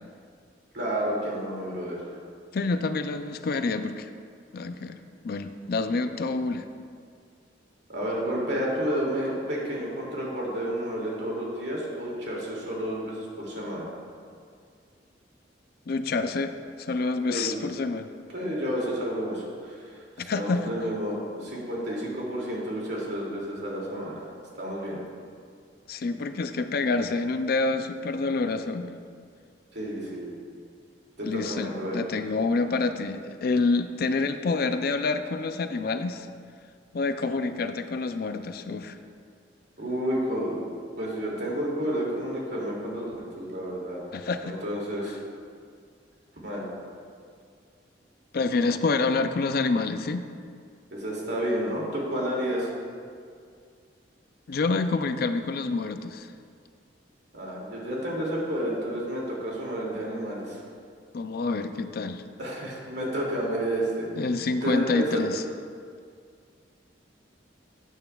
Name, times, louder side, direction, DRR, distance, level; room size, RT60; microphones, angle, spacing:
voice 1, 0.7-2.0 7.9-13.9 17.3-17.6 18.3-24.2 24.6-25.0 29.7-30.4 31.2-32.0 39.8-40.6 41.0-44.0 44.4-45.2 46.4-46.6 50.9-52.7 57.3-60.6 62.4-64.1 64.6-65.2, equal, 70° right, -4 dB, 2.5 m, -30 dB
voice 2, 2.5-4.1 4.5-6.7 15.9-18.1 20.2-20.7 25.9-29.0 31.2-36.3 36.9-39.0 44.1-44.5 45.1-45.2 48.3-50.3 54.5-56.3 61.1-62.2 64.2-65.4, left 3 dB, 55° left, 9 dB, 0.4 m, -27 dB
12.5 x 9.0 x 2.3 m, 2.2 s
head